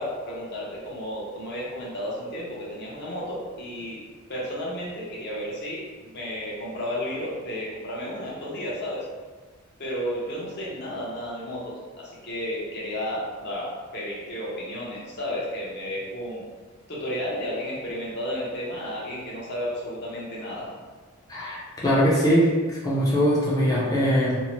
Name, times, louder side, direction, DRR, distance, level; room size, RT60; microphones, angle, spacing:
voice 1, 0.0-4.0 4.3-9.0 9.8-16.4 16.9-20.7, equal, 50° left, -5 dB, 0.8 m, -32 dB
voice 2, 21.8-24.4, equal, 15° left, -7 dB, 0.5 m, -21 dB
2.7 x 2.0 x 2.9 m, 1.4 s
head